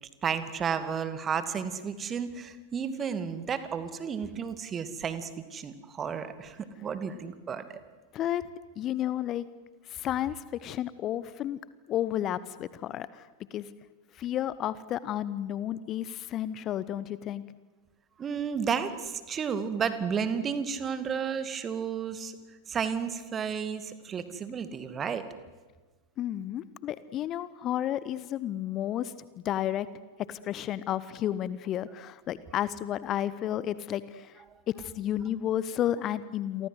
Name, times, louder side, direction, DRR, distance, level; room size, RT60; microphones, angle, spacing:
voice 1, 0.0-7.7 18.2-22.4 22.7-25.2, right 6 dB, 25° right, 11 dB, 2.4 m, -32 dB
voice 2, 8.1-8.5 8.8-9.4 9.9-11.6 11.9-13.7 14.1-17.5 26.2-29.9 30.2-36.7, left 11 dB, 30° left, 17 dB, 0.9 m, -32 dB
29.0 x 23.5 x 8.0 m, 1.3 s
figure-of-eight pair, 90°, 0 cm